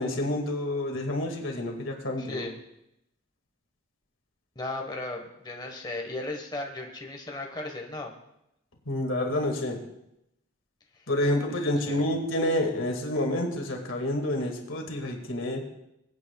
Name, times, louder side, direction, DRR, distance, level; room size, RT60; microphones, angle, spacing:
voice 1, 0.0-2.4 8.9-9.8 11.1-15.6, left 1 dB, 85° left, 2 dB, 2.1 m, -28 dB
voice 2, 2.2-2.5 4.5-8.1 11.7-12.1, left 2 dB, 20° left, 1 dB, 1.3 m, -36 dB
23.0 x 8.6 x 2.3 m, 0.82 s
head